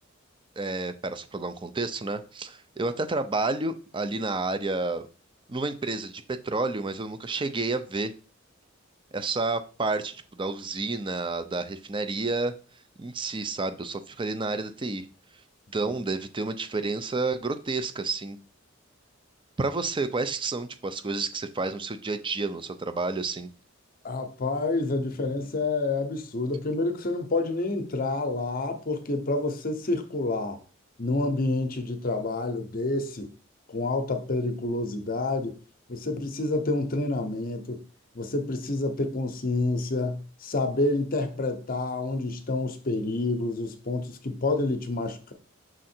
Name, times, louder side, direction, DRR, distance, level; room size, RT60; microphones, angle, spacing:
voice 1, 0.6-5.1 5.5-8.1 9.1-12.5 13.0-15.1 15.7-18.4 19.6-23.5, right 3 dB, 25° right, 0.5 m, -30 dB
voice 2, 24.0-30.6 31.0-33.3 33.7-35.6 35.9-37.8 38.1-45.3, left 2 dB, 45° left, 0.8 m, -28 dB
6.3 x 3.7 x 4.4 m
head